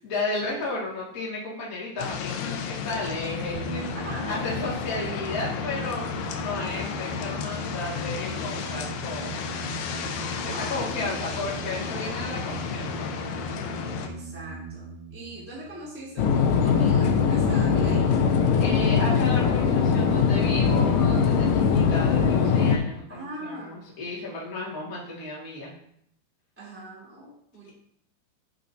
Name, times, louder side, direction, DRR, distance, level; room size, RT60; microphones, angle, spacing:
voice 1, 0.0-3.9 4.3-6.0 6.3-9.5 10.4-13.4 18.6-25.7, left 2 dB, 30° left, -5 dB, 1.8 m, -33 dB
sound 1, 2.0-14.1, left 7 dB, 90° left, 2.8 m, -33 dB
sound 2, 3.5-16.8, right 4 dB, 30° right, 0.8 m, -39 dB
voice 2, 3.9-4.3 10.4-11.2 14.0-18.3 23.1-23.7 26.6-27.7, right 1 dB, 5° right, -7 dB, 2.5 m, -41 dB
sound 3, 16.2-22.8, left 6 dB, 75° left, 2.1 m, -21 dB
9.2 x 7.5 x 2.7 m, 0.72 s
omnidirectional pair, 4.4 m